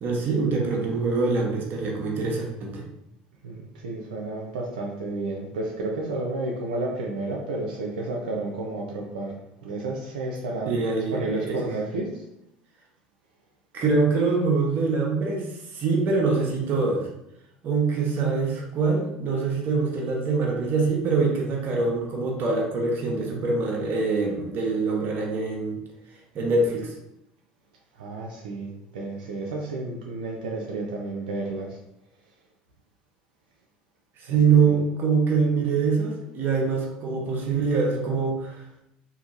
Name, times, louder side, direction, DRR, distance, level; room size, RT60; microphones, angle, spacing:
voice 1, 0.0-2.8 10.6-11.7 13.7-17.1 17.6-25.8 26.3-26.9 34.2-38.8, right 4 dB, 50° right, -1 dB, 0.8 m, -24 dB
voice 2, 3.4-12.1 28.0-31.8 34.3-34.8, right 2 dB, 90° right, -2 dB, 0.4 m, -31 dB
2.8 x 2.6 x 2.5 m, 0.84 s
hypercardioid pair, 80°, 5 cm